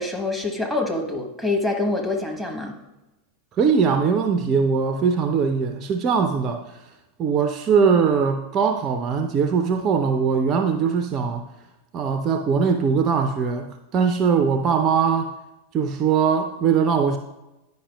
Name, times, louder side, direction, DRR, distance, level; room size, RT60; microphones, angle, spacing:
voice 1, 0.0-2.7, left 2 dB, 5° left, 2 dB, 1.1 m, -25 dB
voice 2, 3.5-6.8 7.2-11.4 11.9-15.3 15.7-17.2, right 6 dB, 30° right, 6 dB, 0.4 m, -21 dB
9.9 x 5.3 x 2.3 m, 0.98 s
figure-of-eight pair, 90°, 0 cm